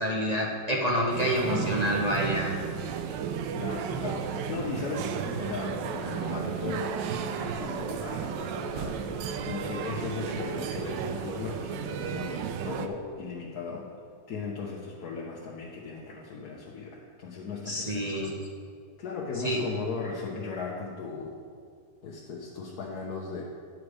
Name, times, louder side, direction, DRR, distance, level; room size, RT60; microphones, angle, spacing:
voice 1, 0.0-2.6 17.7-18.4 19.4-19.6, equal, 45° right, -2 dB, 0.5 m, -28 dB
sound 1, 1.1-12.9, right 7 dB, 75° right, 1.2 m, -33 dB
voice 2, 3.5-13.9 14.3-18.1 19.0-21.4 22.0-23.4, left 4 dB, 60° left, -3 dB, 1.3 m, -37 dB
9.6 x 6.7 x 4.8 m, 2.2 s
omnidirectional pair, 2.0 m